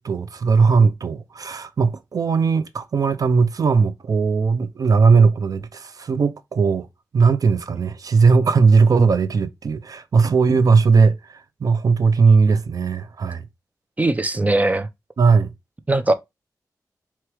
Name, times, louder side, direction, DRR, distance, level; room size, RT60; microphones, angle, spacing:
voice 1, 0.0-6.9 7.1-11.2 11.6-13.4 15.2-15.5, right 5 dB, 65° right, 0.5 m, -18 dB
voice 2, 14.0-14.9 15.9-16.1, right 2 dB, 20° right, 0.6 m, -19 dB
4.6 x 2.9 x 3.0 m
wide cardioid pair, 80°, 7 cm